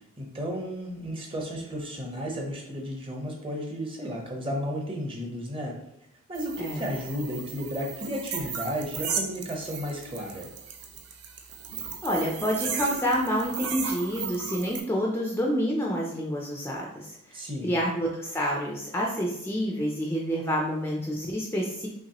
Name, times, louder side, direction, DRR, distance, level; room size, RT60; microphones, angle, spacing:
voice 1, 0.2-5.7 6.3-10.5 17.3-17.8, equal, 25° right, 0 dB, 0.8 m, -33 dB
sound 1, 6.3-14.8, right 6 dB, 90° right, 0.7 m, -36 dB
voice 2, 12.0-17.2 17.6-21.9, equal, 10° left, -2 dB, 0.4 m, -28 dB
5.9 x 3.0 x 2.9 m, 0.81 s
head